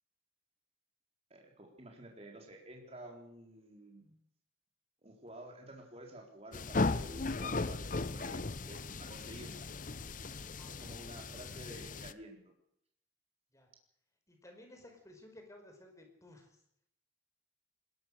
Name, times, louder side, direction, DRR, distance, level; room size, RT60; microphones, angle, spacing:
voice 1, 1.3-4.2 5.0-9.6 10.7-12.5, right 1 dB, 35° right, 1 dB, 4.2 m, -51 dB
sound 1, 6.5-12.1, left 3 dB, 45° left, 0.8 m, -37 dB
voice 2, 10.6-11.2 13.5-13.7 14.3-16.6, left 1 dB, 15° left, 4 dB, 5.1 m, -56 dB
21.0 x 20.0 x 6.6 m, 0.72 s
head